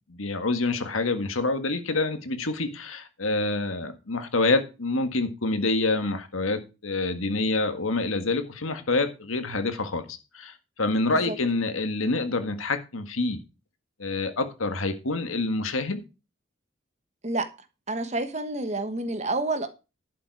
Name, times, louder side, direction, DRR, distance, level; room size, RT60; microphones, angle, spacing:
voice 1, 0.1-13.4 14.0-16.0, left 3 dB, 85° left, 1.7 m, -27 dB
voice 2, 11.1-11.4 17.2-17.5 17.9-19.7, right 2 dB, 35° right, 1.2 m, -29 dB
11.0 x 7.4 x 4.7 m
head